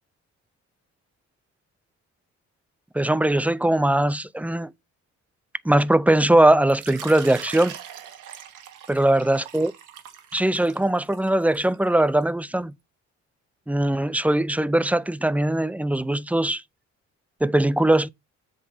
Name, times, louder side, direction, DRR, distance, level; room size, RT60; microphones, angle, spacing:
voice 1, 2.9-4.7 5.6-7.8 8.9-9.7 10.3-12.7 13.7-16.6 17.4-18.1, right 1 dB, 5° right, 0.5 m, -20 dB
Water / Liquid, 6.7-12.2, right 9 dB, 85° right, 1.6 m, -41 dB
7.8 x 3.7 x 5.5 m
cardioid pair, 90°, 30 cm